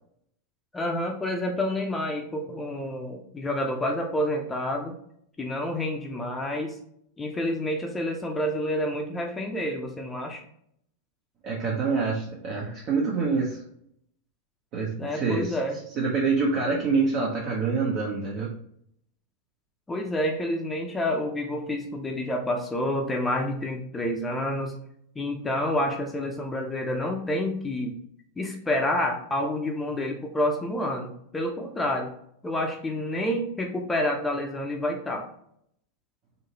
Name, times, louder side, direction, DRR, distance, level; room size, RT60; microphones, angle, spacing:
voice 1, 0.7-5.0 5.4-6.8 7.2-10.4 15.0-15.8 19.9-24.7 25.2-27.9 28.4-32.1 32.4-35.3, left 1 dB, 10° left, 2 dB, 0.5 m, -28 dB
voice 2, 11.4-13.6 14.7-15.6 15.9-18.5, right 4 dB, 40° right, -2 dB, 0.7 m, -26 dB
3.8 x 2.7 x 2.8 m, 0.69 s
figure-of-eight pair, 90°, 0 cm